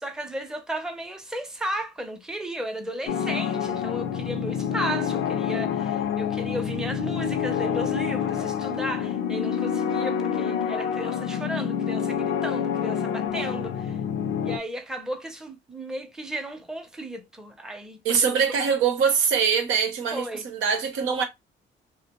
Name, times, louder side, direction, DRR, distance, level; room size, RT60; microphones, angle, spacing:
voice 1, 0.0-14.0 14.4-18.5 20.1-20.4, right 1 dB, 5° right, 0.6 m, -34 dB
sound 1, 3.1-14.6, left 8 dB, 85° left, 0.5 m, -27 dB
voice 2, 18.0-21.2, right 6 dB, 90° right, 0.8 m, -23 dB
2.4 x 2.1 x 2.9 m
cardioid pair, 90°, 20 cm